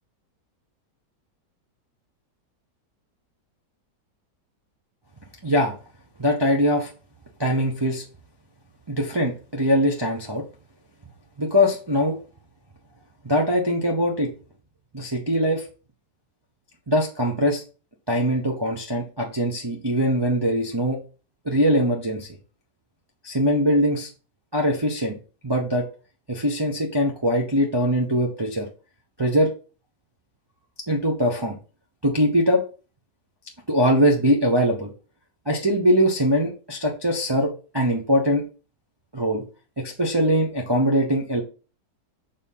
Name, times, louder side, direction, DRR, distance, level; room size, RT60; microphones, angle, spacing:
voice 1, 5.4-5.7 6.2-6.9 7.4-8.0 8.9-10.4 11.4-12.2 13.2-14.3 14.9-15.7 16.9-17.6 18.1-21.0 21.4-22.3 23.2-24.1 24.5-25.2 25.4-25.8 26.3-28.7 29.2-29.5 30.9-31.6 32.0-32.6 33.7-34.9 35.5-38.5 39.1-39.4 39.8-41.4, equal, 20° right, -1 dB, 0.7 m, -22 dB
6.7 x 3.5 x 5.5 m, 0.36 s
omnidirectional pair, 1.9 m